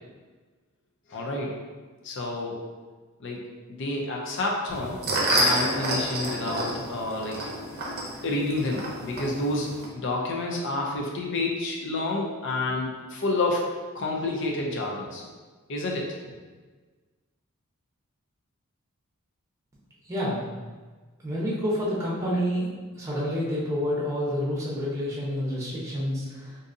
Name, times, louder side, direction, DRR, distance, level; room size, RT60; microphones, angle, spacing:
voice 1, 1.1-1.5 2.0-2.6 3.2-3.4 3.7-5.0 5.3-7.5 8.2-15.3 15.7-16.1, left 2 dB, 60° left, -1 dB, 0.5 m, -29 dB
sound 1, 4.7-9.9, right 1 dB, 45° right, 0.6 m, -29 dB
voice 2, 20.1-20.4 21.2-22.7 23.0-26.6, equal, 15° right, -6 dB, 0.7 m, -28 dB
3.7 x 2.6 x 2.6 m, 1.4 s
head